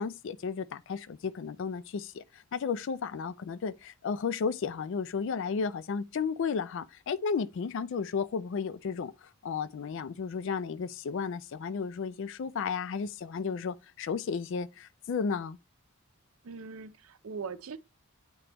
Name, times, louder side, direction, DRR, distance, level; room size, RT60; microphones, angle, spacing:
voice 1, 0.0-9.1 9.4-15.6, left 5 dB, 60° left, 0.3 m, -33 dB
voice 2, 16.4-17.8, right 5 dB, 75° right, 0.6 m, -40 dB
9.5 x 3.4 x 2.9 m
head